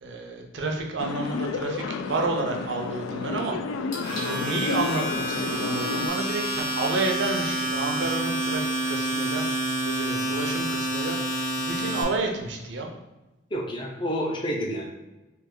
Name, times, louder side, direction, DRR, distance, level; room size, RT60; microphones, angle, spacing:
voice 1, 0.0-3.9 4.2-12.9, right 3 dB, 65° right, 2 dB, 0.6 m, -30 dB
sound 1, 1.0-6.1, left 5 dB, 85° left, 0.3 m, -31 dB
Domestic sounds home sounds, 3.9-12.0, right 1 dB, 50° left, 1.5 m, -28 dB
voice 2, 13.5-14.9, equal, 25° left, 0 dB, 0.5 m, -29 dB
3.4 x 2.9 x 3.7 m, 1.0 s
head